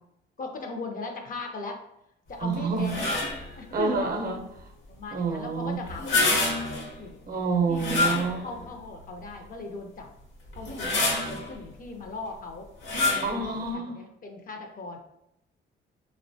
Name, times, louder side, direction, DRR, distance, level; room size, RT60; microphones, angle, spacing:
voice 1, 0.4-1.8 2.3-3.2 3.5-4.0 4.9-6.7 6.9-7.2 7.7-10.1 10.6-12.7 13.1-15.0, left 3 dB, 45° left, 3 dB, 0.4 m, -38 dB
voice 2, 2.4-3.0 3.7-4.4 5.1-5.8 7.3-8.5 13.2-14.0, right 4 dB, 45° right, 3 dB, 0.5 m, -28 dB
sound 1, 2.8-3.5 5.9-6.9 7.7-8.6 9.2-9.3 10.5-11.5 12.8-13.4, left 2 dB, 75° left, 0.8 m, -26 dB
2.9 x 2.1 x 2.6 m, 0.80 s
cardioid pair, 90°, 20 cm